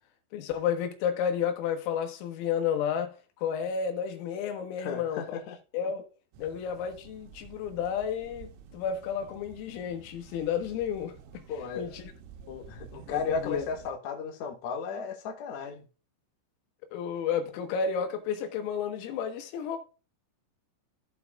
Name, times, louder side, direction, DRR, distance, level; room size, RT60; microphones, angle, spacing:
voice 1, 0.3-5.4 5.7-6.1 6.4-11.4 11.8-12.0 12.5-12.7 13.1-13.7 16.9-19.8, left 7 dB, 85° left, 4.0 m, -31 dB
voice 2, 4.8-5.6 11.5-11.9 12.7-15.8, left 5 dB, 70° left, 1.7 m, -34 dB
sound 1, 6.3-13.9, right 7 dB, 75° right, 3.5 m, -51 dB
15.5 x 5.8 x 2.4 m
omnidirectional pair, 5.9 m